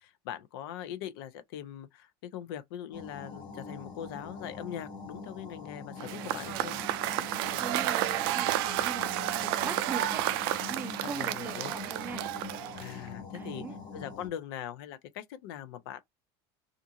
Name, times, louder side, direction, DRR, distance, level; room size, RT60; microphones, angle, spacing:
voice 1, 0.0-6.7 11.0-11.7 12.7-13.6 13.9-16.0, left 10 dB, 80° left, 0.6 m, -41 dB
sound 1, 2.9-14.3, left 4 dB, 35° left, 1.1 m, -44 dB
Cheering / Applause / Crowd, 6.0-13.1, right 14 dB, 75° right, 0.4 m, -31 dB
voice 2, 7.2-10.2 10.7-12.3 13.3-13.8, right 5 dB, 15° right, 0.4 m, -41 dB
2.5 x 2.4 x 2.8 m
cardioid pair, 155°, 12 cm